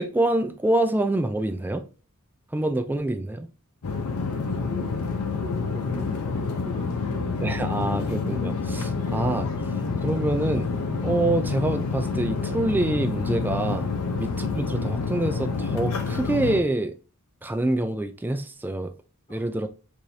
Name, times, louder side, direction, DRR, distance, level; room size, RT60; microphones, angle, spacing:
voice 1, 0.0-1.8 2.5-3.5 7.4-9.5 10.0-10.7 11.0-13.9 14.1-16.9 17.4-18.9 19.3-19.7, right 1 dB, 10° right, 0.3 m, -26 dB
sound 1, 3.8-16.6, left 4 dB, 80° left, 0.6 m, -28 dB
voice 2, 4.1-7.3 19.3-19.5, left 2 dB, 25° left, 1.3 m, -41 dB
4.6 x 2.6 x 2.7 m
head